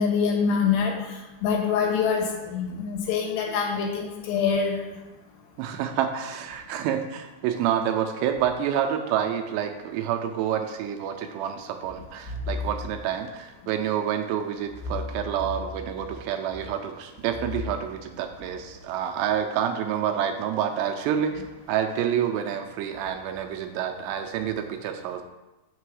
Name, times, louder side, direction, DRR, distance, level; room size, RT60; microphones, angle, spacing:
voice 1, 0.0-4.8, left 6 dB, 75° left, 1 dB, 3.2 m, -25 dB
voice 2, 5.6-25.2, right 9 dB, 85° right, 5 dB, 2.6 m, -28 dB
6.7 x 6.4 x 4.8 m, 1.1 s
omnidirectional pair, 5.1 m